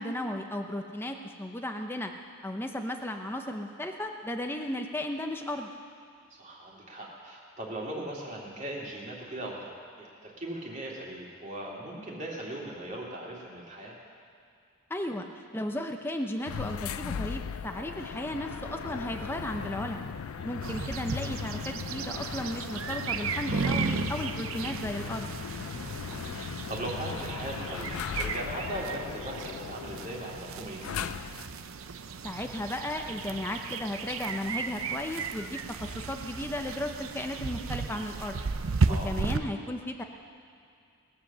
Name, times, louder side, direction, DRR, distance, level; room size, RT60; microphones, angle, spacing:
voice 1, 0.0-2.1 2.4-5.7 14.9-20.1 20.4-25.3 32.2-38.4 38.9-40.0, left 1 dB, 10° left, 4 dB, 0.6 m, -35 dB
voice 2, 6.4-9.7 10.0-14.0 20.4-20.5 25.7-31.1 38.9-39.1, right 1 dB, 35° right, -3 dB, 2.3 m, -39 dB
sound 1, 16.4-31.6, left 7 dB, 80° left, 0.4 m, -38 dB
sound 2, 20.6-39.4, right 4 dB, 75° right, 0.6 m, -34 dB
20.0 x 7.6 x 7.0 m, 2.5 s
head